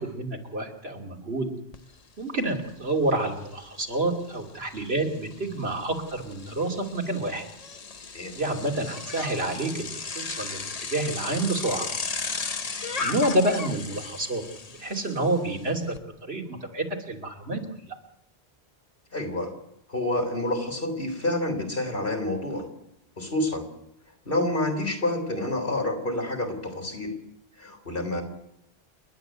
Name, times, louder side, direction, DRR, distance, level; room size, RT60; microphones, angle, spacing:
voice 1, 0.0-1.5 2.2-7.4 8.3-11.9 13.0-14.4 14.7-16.0 16.2-17.6 17.9-18.0, right 2 dB, 80° right, 1 dB, 3.1 m, -28 dB
Bicycle, 1.7-1.8 2.2-16.0, left 4 dB, 40° left, 1.0 m, -36 dB
voice 2, 19.1-19.5 19.9-22.7 23.2-23.7 24.3-27.1 27.6-28.2, left 1 dB, 60° left, 4 dB, 3.8 m, -28 dB
29.0 x 11.5 x 8.0 m, 0.79 s
omnidirectional pair, 1.0 m